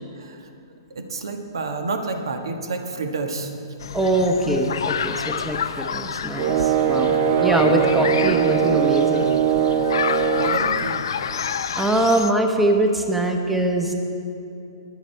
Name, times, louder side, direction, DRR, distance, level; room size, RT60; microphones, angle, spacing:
voice 1, 0.1-0.5 0.9-3.5 7.1-7.2 7.7-8.0 10.4-11.1, right 3 dB, 85° right, 5 dB, 1.4 m, -29 dB
sound 1, 3.8-12.3, left 7 dB, 80° left, 0.6 m, -29 dB
voice 2, 3.9-9.3 11.8-13.9, right 1 dB, 5° right, 3 dB, 0.8 m, -22 dB
sound 2, 6.4-10.6, right 8 dB, 40° right, 0.6 m, -20 dB
20.5 x 7.4 x 4.5 m, 2.7 s
hypercardioid pair, 160°, 2 cm